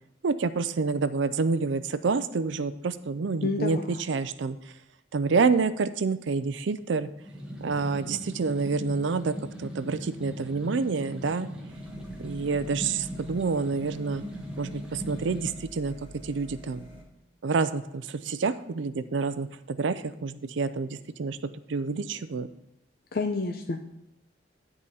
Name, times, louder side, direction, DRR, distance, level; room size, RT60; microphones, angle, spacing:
voice 1, 0.2-4.8 5.1-7.1 7.6-11.5 12.2-14.2 14.6-16.9 17.4-21.4 21.7-22.5, right 4 dB, 70° right, 13 dB, 0.5 m, -28 dB
voice 2, 3.4-4.0 23.1-23.8, left 3 dB, 55° left, 4 dB, 0.6 m, -29 dB
sound 1, 7.2-15.5, equal, 5° right, 1.6 m, -39 dB
sound 2, 11.7-17.0, equal, 30° left, 3.0 m, -48 dB
10.5 x 4.9 x 5.5 m, 0.90 s
head